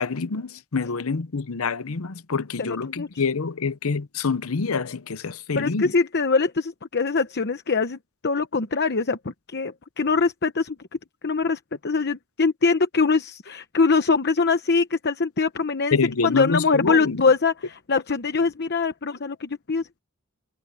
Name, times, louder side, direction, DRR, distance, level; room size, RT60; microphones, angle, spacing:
voice 1, 0.0-5.9 15.9-17.2, left 4 dB, 85° left, 0.8 m, -26 dB
voice 2, 2.6-3.1 5.5-10.8 11.2-16.0 16.2-20.0, left 4 dB, 50° left, 0.9 m, -23 dB
head